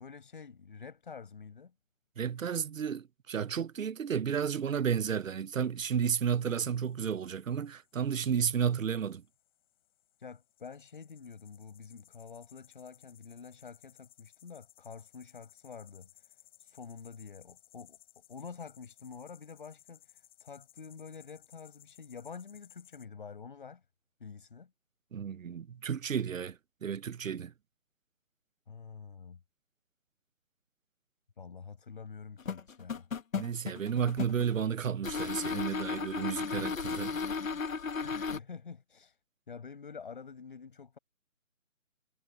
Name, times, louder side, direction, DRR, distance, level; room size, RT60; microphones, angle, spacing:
voice 1, 0.0-1.7 10.2-18.0 18.3-23.8 24.2-24.7 28.7-29.4 31.4-33.1 37.9-39.2 39.5-41.0, left 5 dB, 40° left, 6.6 m, -48 dB
voice 2, 2.2-9.2 25.1-27.5 33.3-37.1, right 7 dB, 75° right, 0.7 m, -32 dB
sound 1, 5.8-23.0, left 13 dB, 20° left, 7.4 m, -62 dB
sound 2, 32.4-34.5 35.0-38.4, left 5 dB, 75° left, 1.2 m, -35 dB
hypercardioid pair, 175°, 40 cm